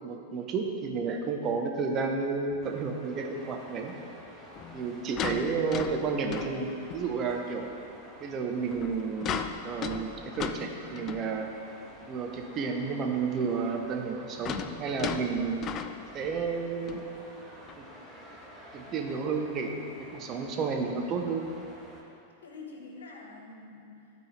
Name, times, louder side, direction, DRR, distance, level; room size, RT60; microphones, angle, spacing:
voice 1, 0.0-3.9 4.7-7.7 8.2-11.5 12.1-15.6 16.1-17.0 17.8-17.9 18.7-21.4, right 5 dB, 35° right, 2 dB, 1.0 m, -31 dB
sound 1, 2.5-2.7 4.6-7.2 7.6-7.8 8.6-11.4 12.0-12.1 12.3-12.4 13.8-16.5 16.9-17.1 17.7-17.8, left 8 dB, 35° left, 0.4 m, -37 dB
sound 2, 2.6-22.0, equal, ahead, 1.7 m, -50 dB
voice 2, 4.9-5.3 22.4-24.1, left 3 dB, 80° left, 0 dB, 1.4 m, -46 dB
12.5 x 4.5 x 3.3 m, 2.5 s
hypercardioid pair, 105°, 0 cm